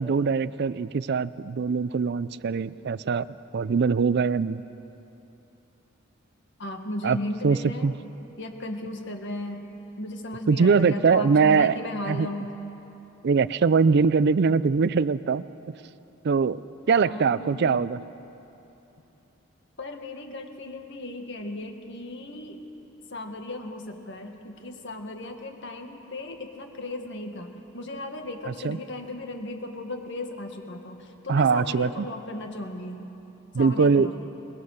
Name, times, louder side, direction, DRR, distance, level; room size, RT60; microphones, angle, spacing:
voice 1, 0.0-3.3 3.5-4.6 7.0-7.2 7.4-7.9 10.5-11.7 12.1-12.3 13.2-15.4 16.2-18.0 28.6-28.8 31.3-32.1 33.5-34.1, right 5 dB, 55° right, 17 dB, 0.4 m, -22 dB
voice 2, 6.6-7.9 8.4-9.7 10.0-12.5 17.1-17.8 19.8-22.6 23.1-33.1 33.5-34.1, left 1 dB, 60° left, 4 dB, 1.8 m, -36 dB
22.5 x 20.5 x 6.6 m, 2.9 s
head